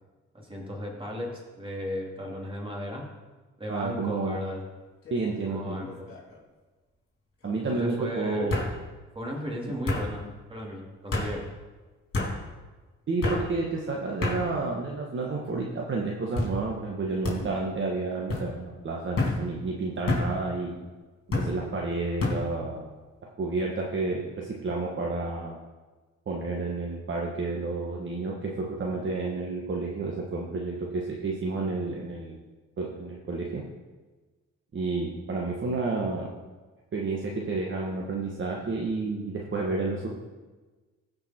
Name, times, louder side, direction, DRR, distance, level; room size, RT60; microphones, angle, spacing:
voice 1, 0.3-3.0 3.6-4.6 5.4-6.1 7.6-8.5 9.1-11.5, equal, 20° right, -1 dB, 2.9 m, -35 dB
voice 2, 3.7-4.4 5.1-5.8 7.4-8.6 13.1-20.8 21.4-22.9 23.4-25.6 26.3-32.4 32.8-33.6 34.7-36.3 36.9-40.1, right 3 dB, 40° right, -1 dB, 1.4 m, -30 dB
sound 1, 5.0-5.4 5.8-6.4 7.4-7.5 8.5-8.7 9.9-10.1 11.1-11.3 12.1-12.3 13.2-13.4 14.2-14.4 15.1-15.6 16.4-16.5 17.2-17.4 18.3-18.5 19.2-19.4 20.1-20.3 21.3-21.5 22.2-22.4, left 2 dB, 50° left, 3.6 m, -28 dB
15.5 x 5.3 x 4.4 m, 1.3 s
cardioid pair, 90°, 30 cm